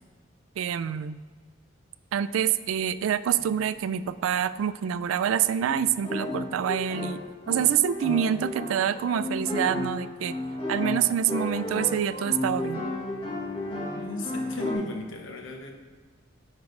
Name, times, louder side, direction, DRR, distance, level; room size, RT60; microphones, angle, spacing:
voice 1, 0.6-1.2 2.1-7.2 7.5-10.4 10.7-12.8, right 9 dB, 80° right, 15 dB, 0.3 m, -26 dB
sound 1, 3.4-3.6 5.6-14.7, left 1 dB, 25° left, 1.2 m, -33 dB
voice 2, 13.9-15.7, left 2 dB, 65° left, 3 dB, 1.0 m, -35 dB
9.5 x 3.2 x 5.2 m, 1.4 s
head